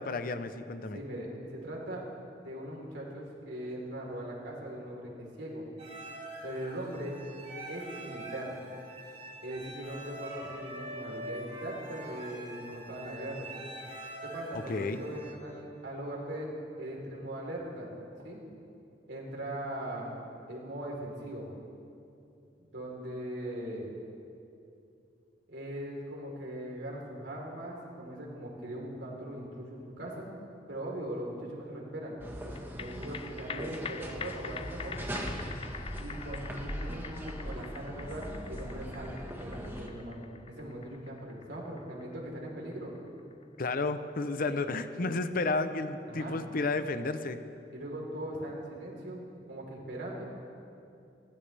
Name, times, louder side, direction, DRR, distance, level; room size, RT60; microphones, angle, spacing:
voice 1, 0.0-1.0 14.7-15.0 43.6-47.4, left 3 dB, 50° left, 10 dB, 0.8 m, -32 dB
voice 2, 0.9-2.1 2.4-5.6 6.4-7.2 7.7-8.6 9.4-13.5 14.2-16.5 16.8-17.9 18.2-18.4 19.1-20.1 20.5-21.5 22.7-23.9 25.5-30.3 30.7-32.2 32.8-35.2 36.0-42.9 46.1-46.4 47.7-50.2, right 1 dB, 80° right, -2 dB, 4.0 m, -40 dB
sound 1, 5.8-15.3, right 1 dB, 40° right, 4.6 m, -44 dB
sound 2, 32.2-39.9, equal, 15° right, 1.5 m, -40 dB
sound 3, 32.6-45.2 45.6-45.7, left 7 dB, 30° left, 0.3 m, -46 dB
30.0 x 14.0 x 3.5 m, 2.6 s
head